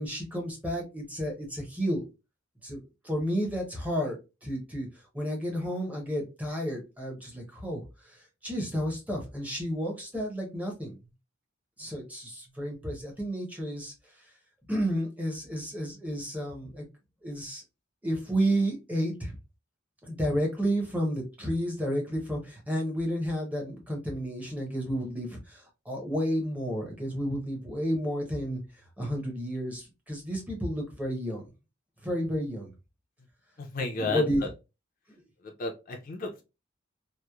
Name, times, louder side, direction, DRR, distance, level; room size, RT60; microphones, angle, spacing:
voice 1, 0.0-2.0 2.6-4.9 5.1-11.0 11.8-13.9 14.7-16.8 17.2-17.6 18.0-19.4 20.0-28.6 29.0-31.5 32.0-32.7 34.0-34.4 35.1-35.2, equal, 10° right, 0 dB, 0.7 m, -31 dB
voice 2, 33.6-34.2 35.6-36.4, left 3 dB, 45° left, 2 dB, 0.4 m, -32 dB
2.9 x 2.0 x 2.2 m, 0.27 s
head